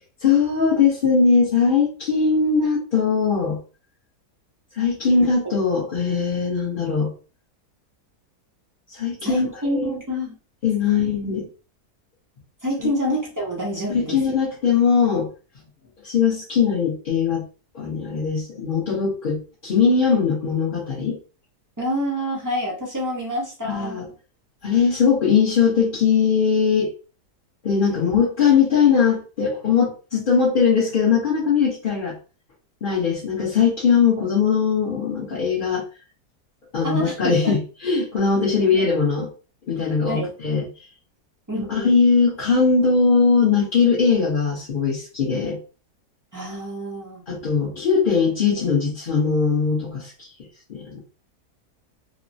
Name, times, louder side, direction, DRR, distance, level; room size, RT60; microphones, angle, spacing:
voice 1, 0.2-3.6 4.7-7.1 8.9-10.0 10.6-11.4 13.9-15.3 16.0-17.4 17.7-21.2 23.6-24.0 24.6-26.9 27.6-32.1 32.8-35.8 36.7-39.3 39.7-40.6 41.7-45.6 47.3-50.3 50.7-51.0, left 5 dB, 45° left, -7 dB, 0.8 m, -20 dB
voice 2, 9.2-10.3 10.9-11.0 12.6-14.4 21.8-24.0 27.9-28.2 36.8-37.6 38.7-38.9 40.1-40.3 41.5-42.0 46.3-47.2, equal, 25° right, -3 dB, 0.4 m, -27 dB
3.1 x 2.0 x 2.6 m, 0.35 s
omnidirectional pair, 1.7 m